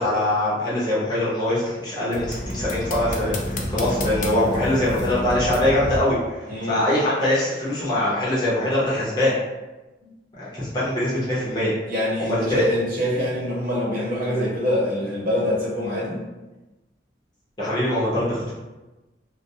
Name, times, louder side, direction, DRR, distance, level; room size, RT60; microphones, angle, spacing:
voice 1, 0.0-9.3 10.4-11.7 12.2-12.6 17.6-18.5, left 1 dB, 25° left, -9 dB, 0.9 m, -23 dB
sound 1, 2.1-6.0, left 1 dB, 45° left, 0.4 m, -29 dB
voice 2, 6.5-6.8 11.9-16.2, left 1 dB, 55° right, -6 dB, 0.9 m, -25 dB
2.3 x 2.3 x 2.7 m, 1.1 s
head